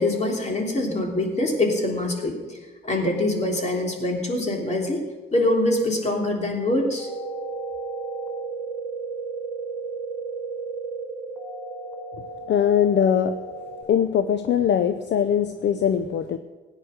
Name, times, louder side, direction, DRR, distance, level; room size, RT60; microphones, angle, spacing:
voice 1, 0.0-2.6 2.8-5.0 5.3-7.1, left 1 dB, 35° left, 1 dB, 3.3 m, -24 dB
sound 1, 7.0-13.8, right 3 dB, 10° left, 5.2 m, -33 dB
voice 2, 12.5-13.3 13.9-16.4, left 8 dB, 60° left, 10 dB, 0.7 m, -21 dB
16.5 x 9.6 x 6.6 m, 1.3 s
cardioid pair, 90°, 20 cm